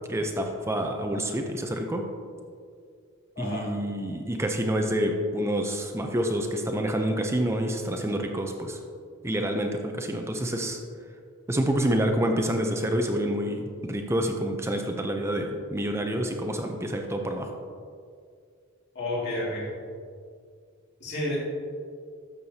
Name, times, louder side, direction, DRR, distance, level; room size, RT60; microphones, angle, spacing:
voice 1, 0.1-2.1 3.4-8.8 9.2-10.8 11.5-17.5, right 1 dB, 10° right, 4 dB, 0.5 m, -28 dB
voice 2, 3.4-3.7 18.9-19.7 21.0-21.4, left 1 dB, 50° left, -6 dB, 2.3 m, -30 dB
12.0 x 7.2 x 2.8 m, 2.2 s
head